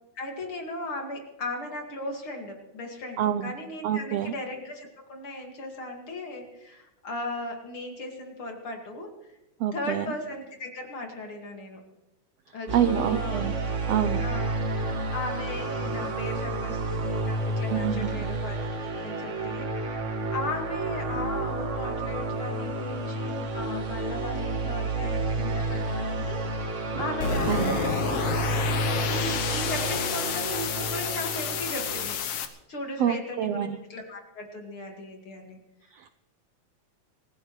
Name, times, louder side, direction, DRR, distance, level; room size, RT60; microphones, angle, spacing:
voice 1, 0.2-9.1 9.7-11.8 12.5-13.4 14.2-14.5 15.1-20.0 20.3-28.3 29.1-32.2 32.7-35.6, left 2 dB, 45° left, 2 dB, 2.8 m, -37 dB
voice 2, 3.2-3.5 3.8-4.3 9.6-10.1 12.7-13.6 13.9-14.2 17.7-18.1 27.5-27.8 33.0-33.8 35.9-36.1, right 10 dB, 75° right, 9 dB, 1.5 m, -27 dB
sound 1, 12.7-32.2, right 2 dB, 60° right, 0.7 m, -30 dB
sound 2, 27.2-32.5, left 7 dB, 65° left, 1.8 m, -30 dB
26.5 x 15.5 x 3.2 m, 0.97 s
omnidirectional pair, 3.5 m